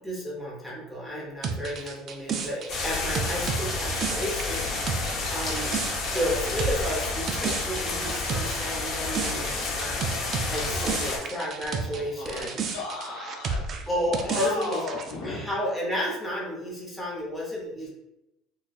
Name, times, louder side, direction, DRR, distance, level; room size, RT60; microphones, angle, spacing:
voice 1, 0.0-5.7 6.1-10.2 10.5-12.6 13.9-14.8 15.2-17.9, equal, ahead, -6 dB, 0.8 m, -32 dB
sound 1, 1.4-12.0 12.3-15.1, right 5 dB, 35° right, 0.3 m, -32 dB
sound 2, 2.7-11.2, left 3 dB, 40° left, 0.7 m, -30 dB
voice 2, 10.4-11.4 11.8-13.9 14.2-15.5 17.8-17.9, left 2 dB, 70° left, -2 dB, 1.1 m, -37 dB
3.9 x 2.3 x 2.4 m, 0.88 s
cardioid pair, 150°, 0 cm